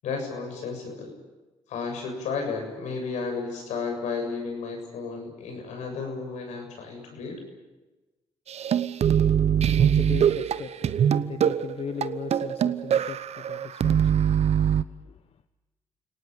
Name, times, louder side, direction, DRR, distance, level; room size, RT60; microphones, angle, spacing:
voice 1, 0.0-1.1 1.7-7.4, left 4 dB, 80° left, 3 dB, 7.5 m, -33 dB
sound 1, 8.5-14.8, right 9 dB, 65° right, 0.9 m, -23 dB
voice 2, 9.5-14.4 15.0-15.2, left 7 dB, 55° left, 11 dB, 1.0 m, -38 dB
29.5 x 18.5 x 8.8 m, 1.2 s
supercardioid pair, 65°, 12 cm